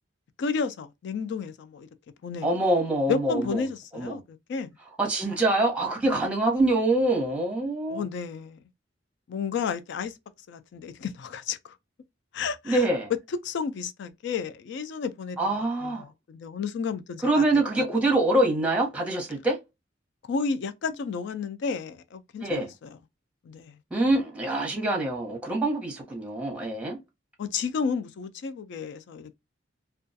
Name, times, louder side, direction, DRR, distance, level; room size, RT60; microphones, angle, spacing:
voice 1, 0.4-1.9 2.2-2.5 3.1-4.7 7.9-8.6 9.3-10.2 10.5-11.8 12.3-12.9 13.3-17.4 17.8-17.9 20.3-22.9 23.4-23.8 27.4-29.4, left 5 dB, 65° left, 0.3 m, -32 dB
voice 2, 2.4-3.6 3.9-4.2 5.0-8.0 12.6-13.1 15.4-16.0 17.2-19.6 22.4-22.7 23.9-27.0, right 2 dB, 5° right, 0.8 m, -25 dB
2.3 x 2.2 x 2.5 m
head